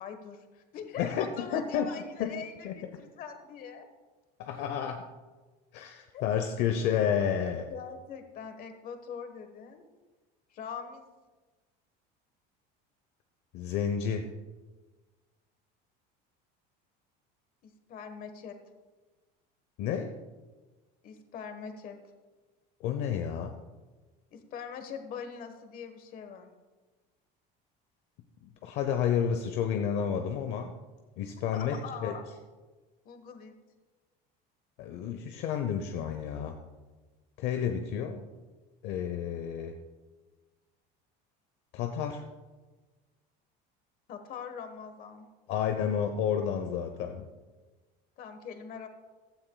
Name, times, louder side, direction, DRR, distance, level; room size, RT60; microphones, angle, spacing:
voice 1, 0.0-3.9 6.1-6.5 7.7-9.8 10.5-11.1 17.6-18.5 21.0-22.0 24.3-26.5 31.5-32.2 33.0-33.5 44.1-45.3 48.2-48.9, left 6 dB, 45° left, 8 dB, 1.3 m, -42 dB
voice 2, 1.0-1.9 2.2-2.3 2.6-2.7 4.4-5.0 5.7-7.7 13.5-14.3 19.8-20.1 22.8-23.5 28.6-30.7 31.2-32.1 34.8-36.6 37.4-38.2 38.8-39.7 41.7-42.2 45.5-47.3, left 8 dB, 60° left, 6 dB, 0.8 m, -30 dB
15.5 x 12.5 x 2.3 m, 1.3 s
cardioid pair, 155°, 20 cm